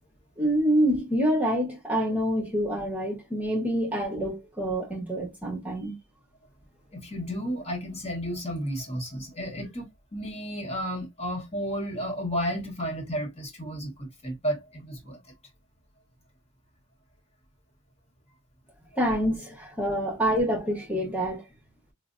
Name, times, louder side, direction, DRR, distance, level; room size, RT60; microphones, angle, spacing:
voice 1, 0.4-5.9 19.0-21.4, equal, 10° right, 1.0 m, -26 dB
voice 2, 6.9-15.2, equal, 30° left, 1.1 m, -32 dB
4.8 x 2.0 x 2.5 m
head